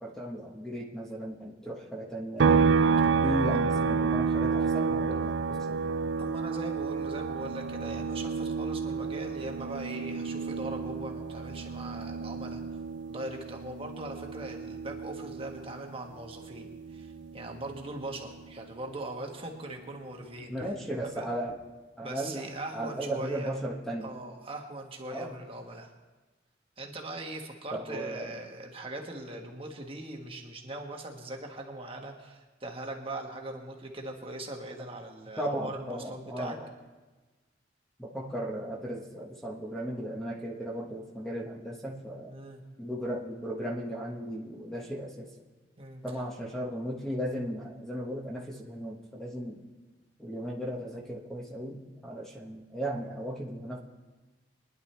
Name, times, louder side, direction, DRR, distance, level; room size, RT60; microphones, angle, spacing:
voice 1, 0.0-2.7 3.2-5.8 20.5-21.5 22.0-22.4 22.7-24.1 25.1-25.4 27.7-28.4 35.4-36.7 38.0-42.3 42.8-45.3 46.0-49.6 50.2-53.8, right 1 dB, ahead, -2 dB, 1.4 m, -36 dB
sound 1, 2.4-15.9 16.3-18.5, right 5 dB, 65° right, 0.4 m, -30 dB
voice 2, 6.2-12.6 13.1-20.5 21.1-21.2 22.0-23.5 24.0-25.9 26.8-36.6 42.3-42.6 45.8-46.0, right 2 dB, 30° right, 1 dB, 1.5 m, -40 dB
23.0 x 10.5 x 3.4 m, 1.2 s
head